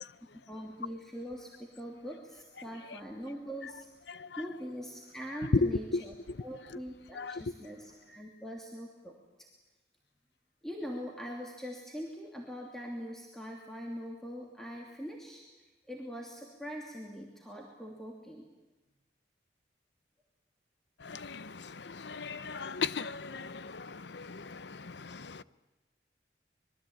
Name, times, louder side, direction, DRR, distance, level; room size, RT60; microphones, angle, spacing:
voice 1, 0.5-3.9 4.4-9.1 10.6-15.4 15.9-18.5, equal, ahead, 2.8 m, -42 dB
voice 2, 4.1-4.4 5.5-6.0 6.3-6.4 7.1-7.4 21.0-25.4, left 3 dB, 70° left, 0.8 m, -35 dB
26.0 x 22.5 x 8.9 m
head